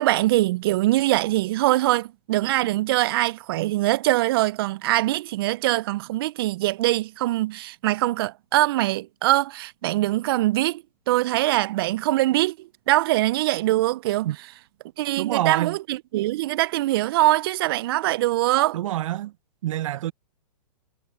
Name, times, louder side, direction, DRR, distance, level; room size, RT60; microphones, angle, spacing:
voice 1, 0.0-14.3 15.0-18.8, right 17 dB, 35° right, 0.4 m, -23 dB
voice 2, 15.2-15.8 18.7-19.3 19.6-20.1, right 13 dB, 50° right, 0.9 m, -26 dB
hypercardioid pair, 140°, 21 cm